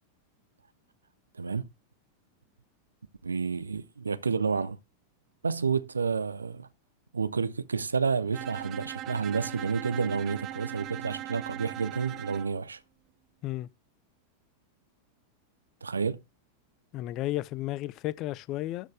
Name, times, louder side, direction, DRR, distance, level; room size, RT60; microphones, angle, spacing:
voice 1, 1.3-1.7 3.2-4.8 5.4-6.7 7.1-12.8 15.8-16.2, right 5 dB, 75° right, 0.7 m, -30 dB
Bowed string instrument, 8.3-12.5, right 13 dB, 35° right, 0.5 m, -40 dB
voice 2, 16.9-18.9, left 15 dB, 40° left, 0.5 m, -33 dB
12.0 x 6.5 x 3.4 m
figure-of-eight pair, 90°, 0 cm